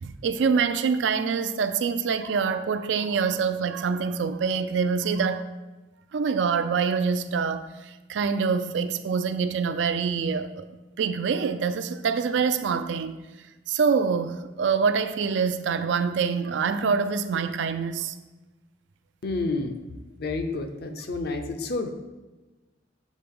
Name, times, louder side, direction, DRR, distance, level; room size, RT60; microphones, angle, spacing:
voice 1, 0.0-5.4 6.1-7.7 8.1-10.7 11.0-13.2 13.7-18.1, right 5 dB, 75° right, 0.4 m, -25 dB
voice 2, 19.2-19.8 20.2-21.9, left 3 dB, 55° left, 0.5 m, -29 dB
7.2 x 3.8 x 3.6 m
head